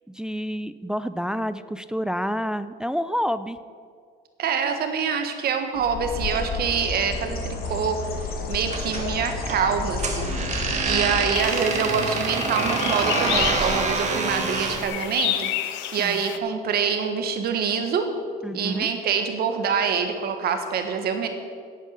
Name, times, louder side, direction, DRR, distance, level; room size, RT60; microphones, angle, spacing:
voice 1, 0.1-3.6 16.0-16.2 18.4-18.9, equal, 5° right, 13 dB, 0.3 m, -28 dB
voice 2, 4.4-8.1 8.5-18.1 18.5-21.3, right 6 dB, 55° right, 7 dB, 1.5 m, -26 dB
Bird, 5.7-11.3, left 3 dB, 50° left, 1.8 m, -31 dB
sound 1, 8.7-14.9, right 4 dB, 40° right, 1.7 m, -27 dB
sound 2, 11.3-16.4, left 12 dB, 75° left, 0.7 m, -30 dB
11.0 x 8.4 x 6.5 m, 2.1 s
cardioid pair, 105°, 19 cm